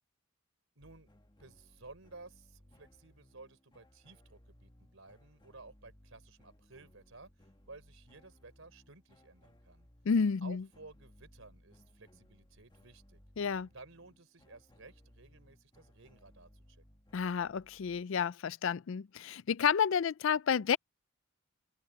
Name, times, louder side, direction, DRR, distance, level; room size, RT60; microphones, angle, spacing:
sound 1, 0.8-18.0, left 1 dB, 20° left, 1.3 m, -63 dB
voice 1, 0.8-1.1 1.4-7.3 7.6-9.9 10.4-13.2 13.7-16.8, right 3 dB, 70° right, 3.7 m, -55 dB
voice 2, 10.1-10.6 13.4-13.7 17.1-20.8, left 6 dB, 65° left, 0.4 m, -30 dB
open air
head